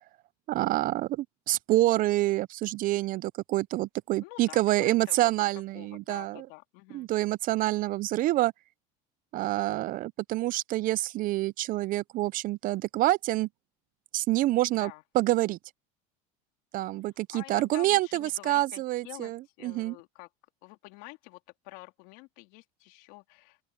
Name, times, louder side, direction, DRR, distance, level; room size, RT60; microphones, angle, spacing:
voice 1, 0.5-6.5 6.9-8.5 9.3-13.5 14.1-15.6 16.7-19.9, right 16 dB, 45° right, 0.5 m, -27 dB
voice 2, 4.2-5.4 5.7-7.1 14.7-15.0 17.3-20.3 20.6-23.6, left 24 dB, 75° left, 3.4 m, -48 dB
open air
supercardioid pair, 120°, 19 cm